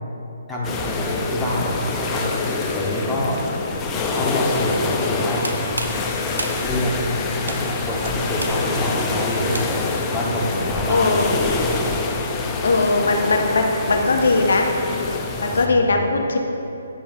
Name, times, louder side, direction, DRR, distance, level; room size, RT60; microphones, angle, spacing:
voice 1, 0.5-2.3 2.7-3.4 4.1-5.4 6.6-6.9 7.5-7.6 7.8-9.6 10.1-11.5 15.4-16.1, left 1 dB, 5° left, -6 dB, 1.1 m, -26 dB
sound 1, 0.6-15.7, left 3 dB, 20° left, 0.5 m, -26 dB
sound 2, 5.3-10.0, right 2 dB, 85° right, 0.7 m, -34 dB
sound 3, 5.7-15.1, left 1 dB, 20° right, 1.6 m, -36 dB
voice 2, 10.9-11.3 12.6-14.7 15.4-16.4, left 3 dB, 70° left, 3 dB, 0.7 m, -19 dB
9.5 x 6.9 x 2.6 m, 2.9 s
figure-of-eight pair, 140°, 0 cm